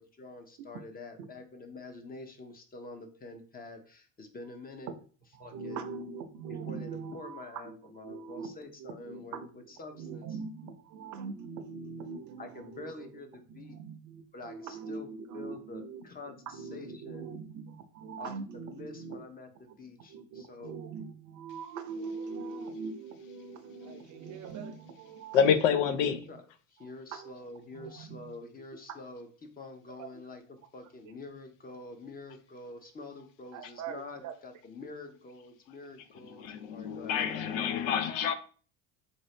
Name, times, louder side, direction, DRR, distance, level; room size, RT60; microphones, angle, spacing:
voice 1, 0.0-4.9 5.4-5.8 6.7-10.3 12.4-13.8 14.3-15.1 15.3-17.3 18.2-20.7 25.9-26.4 26.7-29.3 29.6-37.7, left 3 dB, 25° left, 0.8 m, -47 dB
voice 2, 5.3-9.5 9.9-13.2 13.5-19.2 19.7-19.8 20.1-25.5 26.2-26.3 26.8-27.4 27.7-28.3 30.0-30.1 33.5-34.3, right 5 dB, 50° right, 0.7 m, -42 dB
voice 3, 25.3-26.2 36.2-38.3, left 7 dB, 75° left, 0.6 m, -27 dB
4.0 x 2.6 x 3.2 m
hypercardioid pair, 85°, 38 cm